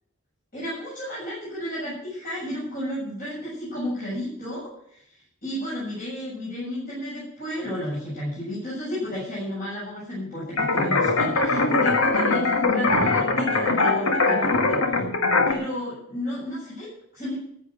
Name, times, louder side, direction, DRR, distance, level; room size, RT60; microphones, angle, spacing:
voice 1, 0.5-5.0 5.4-15.0 15.5-17.4, equal, 40° left, -8 dB, 7.3 m, -32 dB
sound 1, 10.6-15.5, left 3 dB, 85° left, 1.8 m, -21 dB
14.0 x 7.9 x 9.3 m, 0.71 s
head